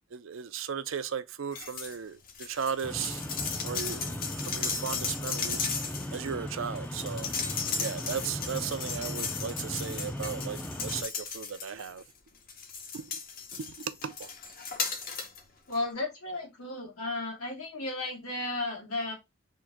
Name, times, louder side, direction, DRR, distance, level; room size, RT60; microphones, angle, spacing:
voice 1, 0.1-3.2 3.6-5.7 6.1-7.3 7.8-12.0 12.9-13.0 13.6-14.3, right 7 dB, 65° right, 0.4 m, -36 dB
sound 1, 1.5-2.0 2.3-12.0 12.5-15.4 15.7-15.8, left 5 dB, 40° left, 0.7 m, -36 dB
sound 2, 2.8-11.0, left 1 dB, 5° left, 0.4 m, -38 dB
voice 2, 15.7-19.1, left 2 dB, 80° left, 1.9 m, -34 dB
3.7 x 2.6 x 4.4 m
head